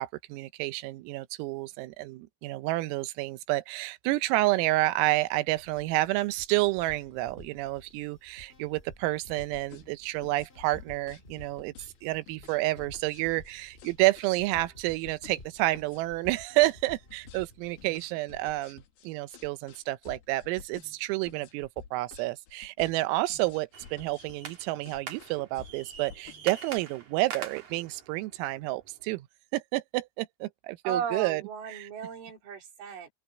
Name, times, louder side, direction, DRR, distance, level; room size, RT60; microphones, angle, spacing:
voice 1, 0.0-11.7 12.0-29.3 29.5-31.4 31.7-31.9, right 19 dB, 85° right, 3.6 m, -29 dB
sound 1, 5.5-17.9, left 1 dB, 30° left, 1.1 m, -54 dB
sound 2, 9.4-26.8, left 9 dB, 60° left, 3.0 m, -51 dB
sound 3, 23.7-29.2, right 7 dB, 45° right, 3.2 m, -44 dB
voice 2, 30.8-33.1, right 7 dB, 65° right, 5.9 m, -35 dB
open air
omnidirectional pair, 6.0 m